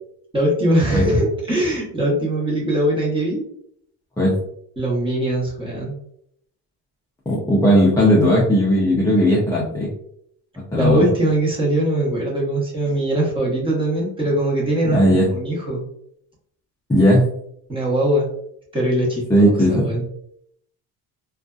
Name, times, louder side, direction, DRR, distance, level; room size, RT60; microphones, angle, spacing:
voice 1, 0.3-3.4 4.8-5.9 10.7-15.9 17.7-18.3 18.7-20.0, right 1 dB, 15° right, -4 dB, 0.8 m, -21 dB
voice 2, 7.3-9.9 10.7-11.1 14.9-15.3 16.9-17.3 19.3-19.9, equal, 10° left, -5 dB, 0.4 m, -16 dB
2.5 x 2.3 x 2.3 m, 0.70 s
cardioid pair, 145°, 38 cm